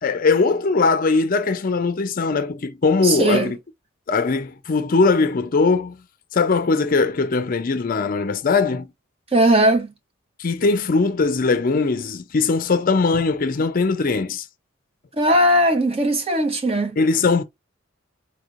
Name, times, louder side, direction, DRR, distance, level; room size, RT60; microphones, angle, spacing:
voice 1, 0.0-3.6 4.1-6.0 6.3-8.9 10.4-14.5 17.0-17.4, left 4 dB, 45° left, 0.4 m, -20 dB
voice 2, 3.0-3.5 9.3-9.9 15.1-17.0, right 1 dB, 30° right, 0.8 m, -18 dB
4.3 x 2.9 x 2.5 m
head